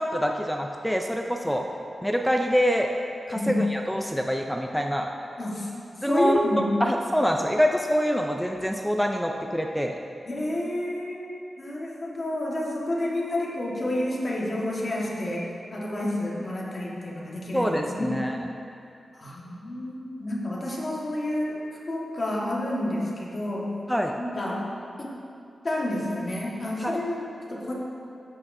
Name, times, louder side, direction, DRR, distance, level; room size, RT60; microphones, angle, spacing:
voice 1, 0.0-1.6 2.0-2.9 3.3-5.1 6.0-6.4 6.8-10.0 17.5-18.4 23.9-24.1 26.8-27.0, equal, ahead, 2 dB, 0.4 m, -25 dB
voice 2, 5.4-5.7 6.1-6.7 10.3-11.3 11.6-18.2 19.1-21.6 21.9-23.7 24.2-24.7 25.0-25.1 25.6-27.7, left 1 dB, 35° left, -4 dB, 1.4 m, -29 dB
14.5 x 6.1 x 2.7 m, 2.6 s
wide cardioid pair, 150°, 0 cm